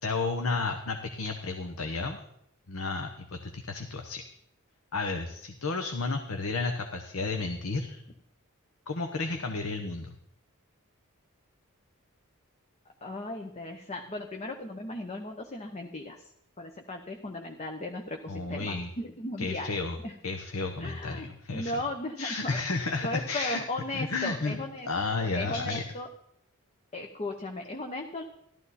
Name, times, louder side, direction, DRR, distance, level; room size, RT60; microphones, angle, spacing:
voice 1, 0.0-2.2 2.7-4.2 4.9-8.0 8.9-10.1 18.3-18.9 19.4-20.0 20.2-21.7 22.2-23.6 23.9-24.6 24.9-25.8, left 3 dB, 70° left, 4 dB, 1.1 m, -32 dB
voice 2, 13.0-16.3 16.6-19.7 20.0-20.1 20.8-21.3 21.5-22.6 23.0-26.1 26.9-28.2, left 2 dB, 30° left, 3 dB, 0.9 m, -36 dB
15.0 x 12.5 x 4.2 m, 0.74 s
head